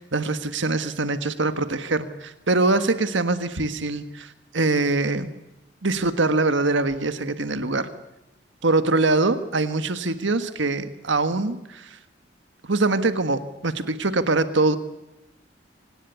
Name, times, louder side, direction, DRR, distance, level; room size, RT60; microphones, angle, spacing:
voice 1, 0.0-5.3 5.8-7.9 8.6-12.0 12.6-14.8, right 3 dB, 75° right, 10 dB, 1.6 m, -23 dB
25.5 x 19.0 x 8.3 m, 0.92 s
head